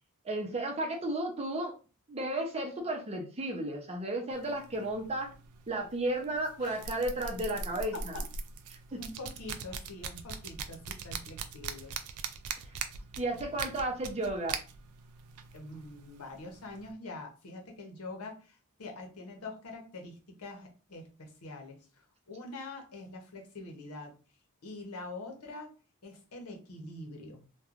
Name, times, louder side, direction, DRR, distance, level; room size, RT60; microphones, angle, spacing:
voice 1, 0.2-1.8 2.1-5.3 5.7-8.2 8.7-9.0 13.2-14.6, right 1 dB, 30° right, 2 dB, 0.6 m, -33 dB
sound 1, 4.3-16.9, right 5 dB, 85° right, 0.4 m, -42 dB
voice 2, 9.0-12.0 15.5-24.1 24.6-25.7 26.0-27.4, left 2 dB, 80° left, 2 dB, 0.8 m, -45 dB
3.0 x 2.2 x 2.4 m, 0.34 s
head